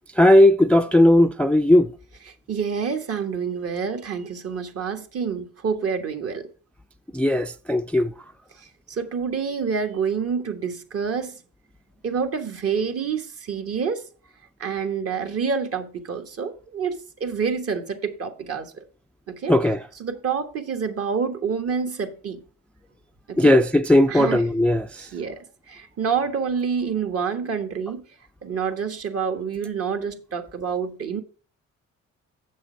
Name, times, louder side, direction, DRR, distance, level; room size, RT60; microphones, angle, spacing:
voice 1, 0.2-1.9 7.1-8.1 19.5-19.8 23.4-24.8, left 1 dB, 5° left, 0.3 m, -17 dB
voice 2, 2.2-6.5 8.6-11.4 12.0-14.0 14.6-18.8 19.3-19.6 19.9-22.4 23.3-23.6 24.1-24.5 25.0-28.0 28.4-31.2, right 6 dB, 50° right, 1.4 m, -28 dB
7.5 x 6.3 x 4.5 m
cardioid pair, 90°, 30 cm